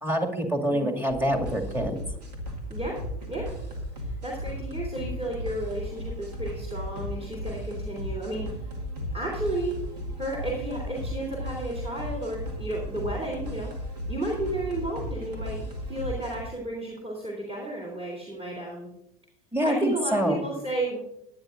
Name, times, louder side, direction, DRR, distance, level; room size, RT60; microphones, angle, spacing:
voice 1, 0.0-2.0 19.5-20.4, equal, 10° right, 2 dB, 2.2 m, -26 dB
sound 1, 1.1-16.4, equal, 85° right, 1.9 m, -35 dB
voice 2, 2.7-3.0 3.3-3.6 4.0-8.5 9.1-9.7 10.2-13.7 14.1-18.9 19.6-21.0, right 1 dB, 30° right, -2 dB, 3.4 m, -32 dB
18.0 x 10.5 x 2.6 m, 0.79 s
hypercardioid pair, 70°, 20 cm